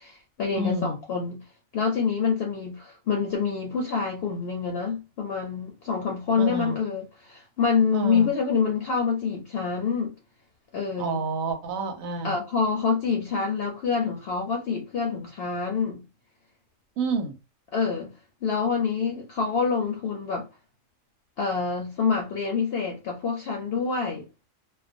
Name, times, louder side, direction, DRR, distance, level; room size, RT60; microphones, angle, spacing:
voice 1, 0.0-1.4 1.7-10.1 10.7-11.2 12.2-16.0 17.7-18.1 18.4-20.5 21.4-24.3, left 5 dB, 60° left, 0.7 m, -26 dB
voice 2, 0.5-1.0 6.4-6.8 7.9-8.3 11.0-12.4 17.0-17.4, right 2 dB, 90° right, 1.1 m, -29 dB
2.4 x 2.2 x 2.5 m
omnidirectional pair, 1.4 m